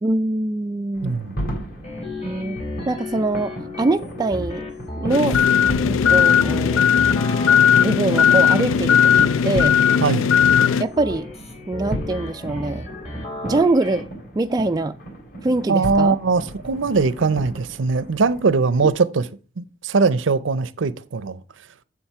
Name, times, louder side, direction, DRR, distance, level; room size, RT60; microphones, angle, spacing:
voice 1, 0.0-1.2 2.2-2.6 2.9-4.6 5.0-5.4 5.8-6.8 7.8-9.8 10.8-11.3 11.7-12.9 13.4-14.0 14.4-15.0 15.4-16.2 18.8-18.9, right 2 dB, 20° right, 0.3 m, -23 dB
sound 1, 0.9-18.9, right 1 dB, 50° left, 3.2 m, -35 dB
voice 2, 1.0-1.4 10.0-10.3 15.7-19.3 19.6-21.4, right 4 dB, 75° right, 0.6 m, -21 dB
sound 2, 1.8-14.0, left 2 dB, 35° left, 2.3 m, -34 dB
sound 3, 5.1-10.8, left 8 dB, 90° left, 0.3 m, -17 dB
7.3 x 7.3 x 4.6 m
head